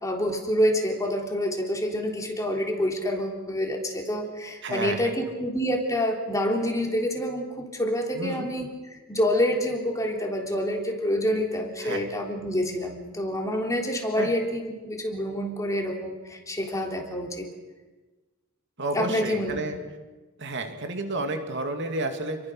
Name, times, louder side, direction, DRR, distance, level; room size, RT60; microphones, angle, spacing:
voice 1, 0.0-8.7 9.1-17.5 18.9-19.6, equal, 15° left, 1 dB, 3.7 m, -27 dB
voice 2, 4.6-5.1 8.1-8.5 11.8-12.0 14.1-14.3 18.8-19.8 20.4-22.4, right 2 dB, 55° right, 4 dB, 2.9 m, -31 dB
30.0 x 22.5 x 6.5 m, 1.2 s
head